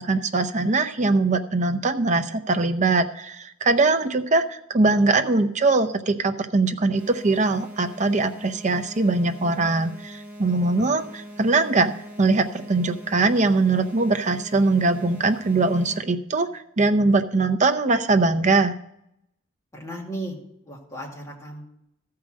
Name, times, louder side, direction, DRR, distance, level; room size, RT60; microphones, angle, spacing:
voice 1, 0.0-11.9 12.2-18.7, right 3 dB, 35° right, 7 dB, 0.7 m, -21 dB
sound 1, 7.0-16.0, equal, 10° right, 1.0 m, -42 dB
voice 2, 19.7-20.4 20.7-21.7, right 1 dB, 15° left, -3 dB, 2.3 m, -35 dB
13.5 x 4.8 x 7.5 m, 0.78 s
head